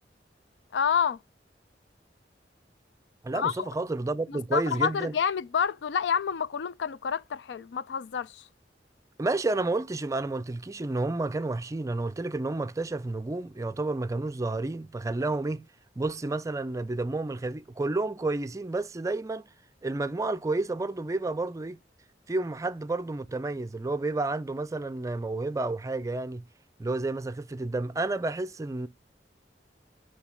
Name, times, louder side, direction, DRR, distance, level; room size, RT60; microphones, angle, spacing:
voice 1, 0.7-1.2 3.3-3.7 4.3-8.4, left 7 dB, 80° left, 0.4 m, -28 dB
voice 2, 3.2-5.1 9.2-15.6 16.0-19.5 19.8-21.8 22.3-26.4 26.8-28.9, right 2 dB, 20° right, 0.4 m, -30 dB
8.0 x 3.3 x 5.7 m
head